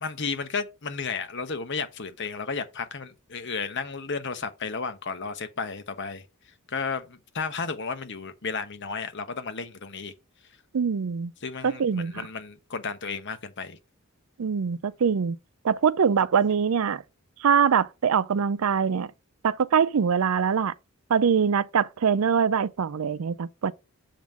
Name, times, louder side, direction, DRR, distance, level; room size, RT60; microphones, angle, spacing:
voice 1, 0.0-6.2 6.7-10.1 11.4-13.8, left 5 dB, 55° left, 1.1 m, -33 dB
voice 2, 10.7-11.3 11.6-12.1 14.4-15.4 15.6-17.0 17.4-19.1 19.4-20.7 21.1-23.7, right 7 dB, 75° right, 0.4 m, -23 dB
7.2 x 3.7 x 5.9 m
head